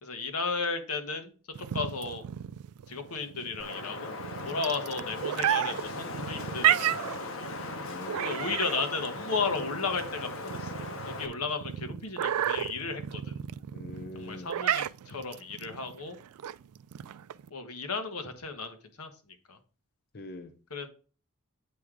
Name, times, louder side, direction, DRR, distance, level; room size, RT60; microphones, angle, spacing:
voice 1, 0.0-1.3 1.6-2.2 2.9-4.2 4.4-7.5 8.2-13.4 14.1-16.2 17.5-19.1 19.5-19.6 20.7-20.9, left 4 dB, 90° left, 6 dB, 1.2 m, -34 dB
sound 1, 1.6-17.5, right 11 dB, 90° right, 0.3 m, -32 dB
Wind, 3.6-11.3, left 2 dB, 65° left, 1.0 m, -39 dB
voice 2, 7.8-8.5 13.7-14.5 20.1-20.5, left 1 dB, 45° left, 6 dB, 0.7 m, -43 dB
8.4 x 3.7 x 4.7 m, 0.37 s
head